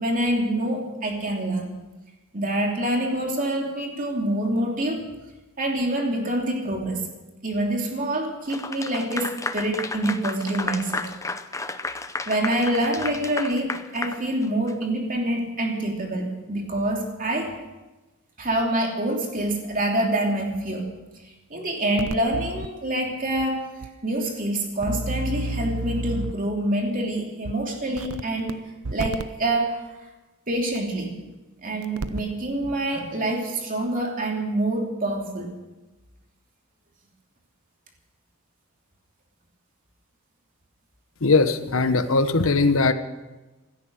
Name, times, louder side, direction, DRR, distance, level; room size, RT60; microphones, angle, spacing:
voice 1, 0.0-1.6 2.3-5.1 5.6-7.1 7.4-11.1 12.3-17.6 18.4-20.9 21.5-23.7 24.0-28.5 28.9-30.1 30.5-31.1 31.6-35.5, right 1 dB, 40° right, 1 dB, 3.0 m, -26 dB
Clapping / Applause, 8.5-14.8, left 3 dB, 15° left, 0.6 m, -32 dB
sound 1, 22.0-22.7 23.4-23.5 23.8-23.9 24.8-26.5 27.5-27.6 28.0-28.5 28.8-29.2 30.8-30.9 31.8-32.3 32.6-32.8, right 2 dB, 85° right, 0.8 m, -30 dB
voice 2, 41.2-42.9, left 3 dB, 65° left, 10 dB, 1.1 m, -20 dB
16.0 x 13.5 x 6.3 m, 1.1 s
head